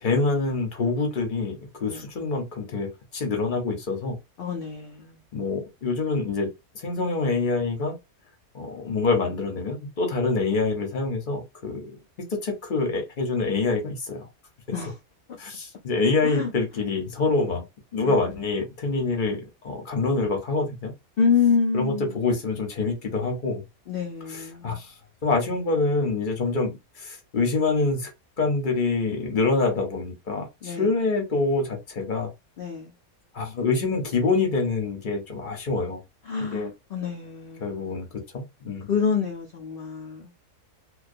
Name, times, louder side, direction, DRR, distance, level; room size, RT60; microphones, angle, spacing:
voice 1, 0.0-4.2 5.3-6.5 6.7-8.0 8.5-12.0 12.3-14.3 15.4-17.7 17.9-20.9 21.7-23.6 24.3-24.9 25.2-28.1 28.4-32.3 33.3-36.0 36.4-36.7 37.6-38.9, left 3 dB, 45° left, 0.7 m, -26 dB
voice 2, 4.4-5.2 14.7-15.0 16.2-16.5 18.0-18.1 21.2-22.1 23.9-24.9 30.6-30.9 32.6-32.9 36.3-38.1 38.9-40.3, left 6 dB, 90° left, 0.4 m, -27 dB
2.2 x 2.2 x 2.5 m
omnidirectional pair, 1.5 m